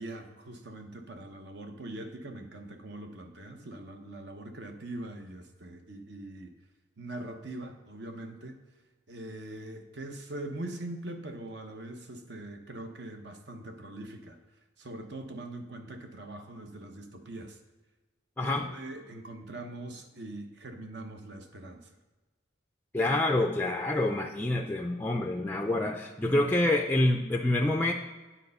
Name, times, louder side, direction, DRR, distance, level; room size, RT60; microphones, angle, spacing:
voice 1, 0.0-6.5 7.0-8.6 9.1-14.4 14.8-17.6 18.4-21.8, right 1 dB, 60° right, 5 dB, 0.8 m, -42 dB
voice 2, 18.4-18.7 22.9-27.9, left 1 dB, 10° left, 2 dB, 0.4 m, -27 dB
9.2 x 4.3 x 5.4 m, 1.2 s
head